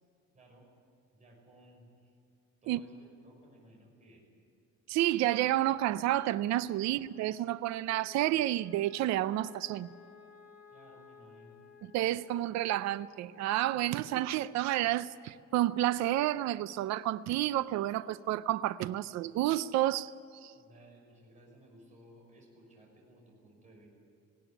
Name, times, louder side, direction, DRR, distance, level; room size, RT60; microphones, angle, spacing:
voice 1, 0.3-0.7 1.1-2.2 2.6-4.2 6.8-7.0 10.7-11.6 20.5-23.9, right 1 dB, 25° right, -1 dB, 6.0 m, -58 dB
voice 2, 4.9-9.9 11.8-20.1 20.4-20.5, right 14 dB, 65° right, 15 dB, 0.5 m, -30 dB
Wind instrument woodwind instrument, 6.2-14.7, left 5 dB, 5° right, 4.2 m, -58 dB
20.0 x 16.5 x 9.9 m, 2.5 s
cardioid pair, 170°, 30 cm